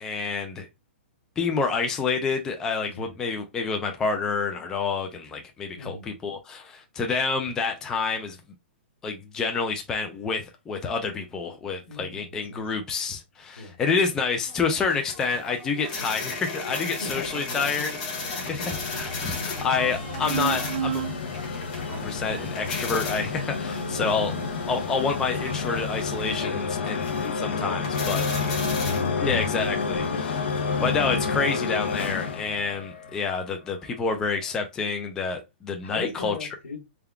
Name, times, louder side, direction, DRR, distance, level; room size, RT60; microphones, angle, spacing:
voice 1, 0.0-0.7 1.4-8.4 9.0-17.9 18.5-21.0 22.0-24.3 24.7-28.2 29.2-36.5, left 5 dB, 10° left, 0.3 m, -28 dB
voice 2, 2.8-3.1 5.3-5.4 5.7-6.1 11.8-12.9 13.5-13.8 16.0-16.1 16.7-17.9 18.2-18.7 23.2-23.7 26.4-26.6 33.1-33.2 35.8-36.8, left 3 dB, 80° left, 1.4 m, -40 dB
sound 1, 14.5-32.3, left 3 dB, 35° left, 1.1 m, -37 dB
sound 2, 17.3-33.4, left 5 dB, 65° left, 0.7 m, -30 dB
sound 3, 18.7-26.4, right 8 dB, 50° right, 0.7 m, -36 dB
3.6 x 2.2 x 3.4 m
hypercardioid pair, 170°, 7 cm